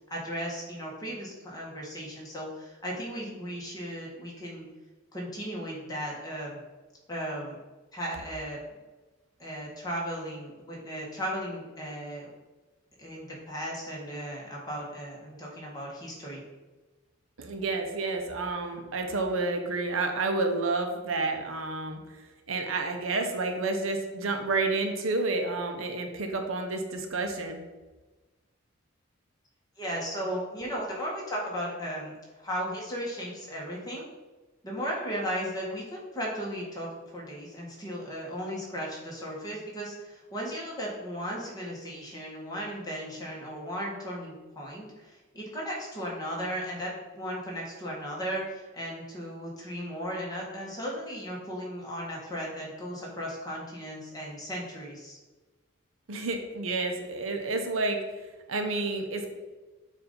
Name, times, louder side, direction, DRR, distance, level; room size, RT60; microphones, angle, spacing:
voice 1, 0.1-4.7 5.1-6.6 7.1-7.6 7.9-8.6 9.4-12.3 13.0-16.4 29.8-34.0 34.6-55.2, equal, 20° left, -4 dB, 1.5 m, -36 dB
voice 2, 17.4-22.0 22.5-27.6 56.1-58.0 58.5-59.3, right 3 dB, 85° right, 4 dB, 0.8 m, -30 dB
7.0 x 2.7 x 5.2 m, 1.2 s
head